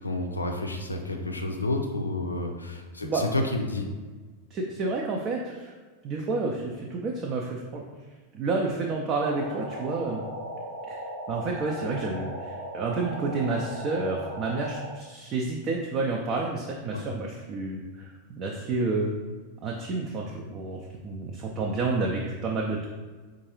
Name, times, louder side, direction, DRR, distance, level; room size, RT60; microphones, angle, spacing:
voice 1, 0.0-3.9 16.9-17.0, left 2 dB, 80° left, 4 dB, 0.4 m, -30 dB
voice 2, 4.5-5.7 6.0-7.8 8.3-10.2 10.9-11.0 11.3-19.2 19.6-22.9, right 3 dB, 35° right, -1 dB, 0.4 m, -30 dB
sound 1, 9.2-14.9, equal, 90° right, 1.0 m, -37 dB
4.5 x 2.5 x 2.9 m, 1.4 s
figure-of-eight pair, 90°, 0 cm